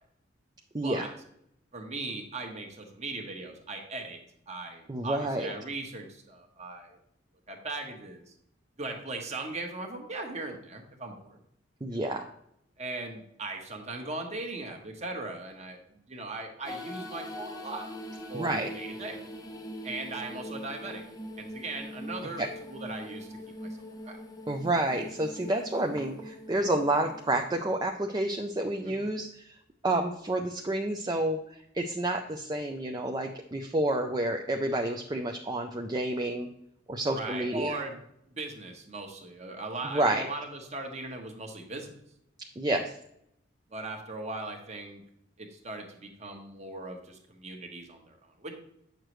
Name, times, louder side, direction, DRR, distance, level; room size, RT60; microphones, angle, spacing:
voice 1, 0.7-1.1 4.9-5.5 11.8-12.2 18.3-18.7 22.4-22.5 24.5-29.6 29.8-31.4 31.7-36.5 36.9-37.7 39.9-40.2 42.6-42.9, right 1 dB, 20° right, 3 dB, 0.5 m, -29 dB
voice 2, 1.7-4.2 4.5-7.0 7.5-8.2 8.8-11.4 11.9-12.0 12.8-15.8 16.1-17.9 18.3-19.2 19.8-21.0 21.4-23.7 24.0-24.2 28.8-29.1 37.1-38.0 38.4-41.9 43.7-45.0 45.4-48.5, right 2 dB, 35° right, 3 dB, 1.2 m, -39 dB
sound 1, 16.6-28.5, equal, 20° left, 0.9 m, -42 dB
8.8 x 6.5 x 3.1 m, 0.75 s
head